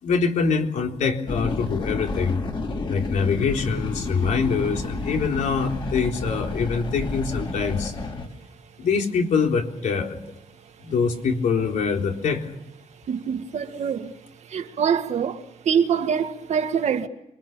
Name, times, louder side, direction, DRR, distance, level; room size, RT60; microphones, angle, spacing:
voice 1, 0.0-2.4 2.9-7.9 8.8-10.2 10.8-12.5, left 5 dB, 85° left, 3.9 m, -24 dB
sound 1, 1.3-8.3, left 2 dB, 40° left, 3.8 m, -30 dB
voice 2, 13.1-14.1 14.5-17.1, right 7 dB, 65° right, 2.0 m, -24 dB
27.5 x 24.0 x 6.9 m
wide cardioid pair, 170°, 12 cm